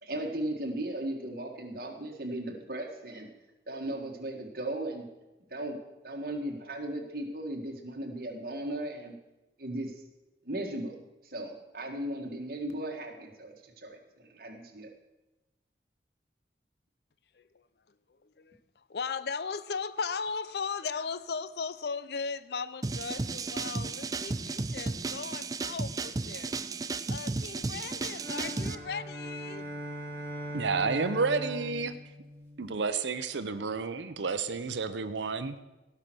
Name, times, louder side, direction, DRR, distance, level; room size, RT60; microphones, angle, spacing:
voice 1, 0.0-3.3 3.7-5.1 5.5-5.8 6.0-9.1 9.6-10.0 10.4-11.0 11.2-14.9, right 1 dB, 55° right, 2 dB, 1.8 m, -36 dB
voice 2, 17.3-26.5 27.1-29.7, left 5 dB, 65° left, 15 dB, 0.5 m, -37 dB
sound 1, 22.8-28.7, right 3 dB, 20° right, 0.4 m, -34 dB
sound 2, 28.1-32.8, equal, 15° left, 1.9 m, -40 dB
voice 3, 30.5-31.9 32.6-35.6, right 4 dB, 85° right, 11 dB, 0.7 m, -30 dB
17.0 x 5.8 x 6.2 m, 1.1 s
head